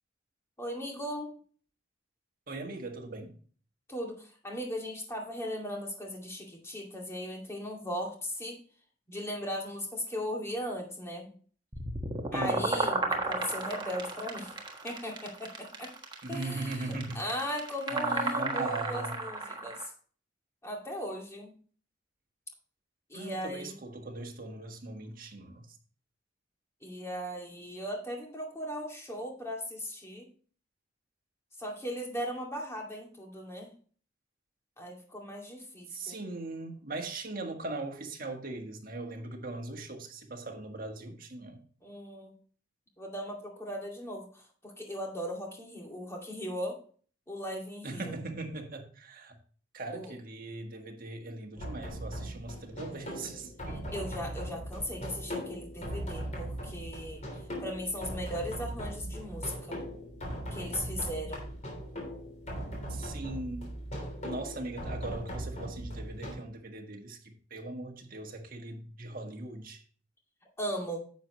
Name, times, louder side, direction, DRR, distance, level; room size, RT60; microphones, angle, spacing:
voice 1, 0.6-1.3 3.9-8.6 9.1-11.3 12.3-14.5 14.8-15.9 16.3-19.9 20.6-21.5 23.1-23.8 26.8-30.3 31.6-33.7 34.8-36.2 41.8-42.3 43.0-46.8 47.3-48.2 49.9-50.1 53.9-57.2 57.6-59.8 60.5-61.4 70.6-71.0, equal, 15° left, 2.3 m, -38 dB
voice 2, 2.5-3.3 12.3-12.7 16.2-17.2 17.9-19.2 23.1-25.6 35.9-41.6 47.8-49.4 49.7-53.9 54.2-54.3 62.9-63.7 64.2-69.8, right 2 dB, 50° right, 1.6 m, -39 dB
sound 1, 11.7-19.9, right 2 dB, 25° right, 1.4 m, -33 dB
sound 2, 51.6-66.3, equal, 40° left, 3.2 m, -39 dB
10.0 x 7.3 x 3.0 m
head